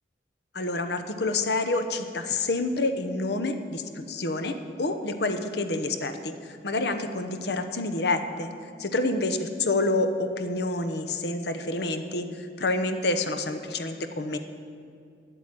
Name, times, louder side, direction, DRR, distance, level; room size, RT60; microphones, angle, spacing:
voice 1, 0.5-8.5 8.8-14.4, left 2 dB, 65° left, 7 dB, 0.9 m, -28 dB
10.0 x 8.0 x 8.9 m, 2.3 s
head